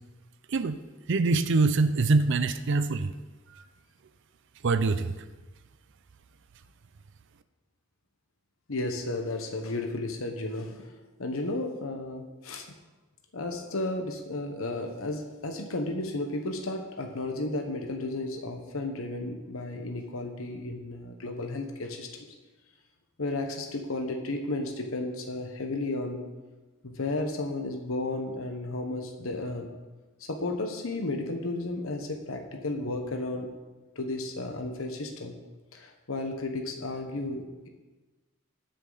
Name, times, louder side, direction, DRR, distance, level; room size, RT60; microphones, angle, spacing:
voice 1, 1.1-3.1 4.6-5.1, right 3 dB, 60° right, 10 dB, 0.5 m, -24 dB
voice 2, 8.7-10.9 11.2-12.7 13.3-22.2 23.2-26.2 26.8-29.7 30.2-33.5 33.9-35.3 35.7-37.7, left 2 dB, 75° left, 3 dB, 1.2 m, -33 dB
20.0 x 6.7 x 4.0 m, 1.2 s
head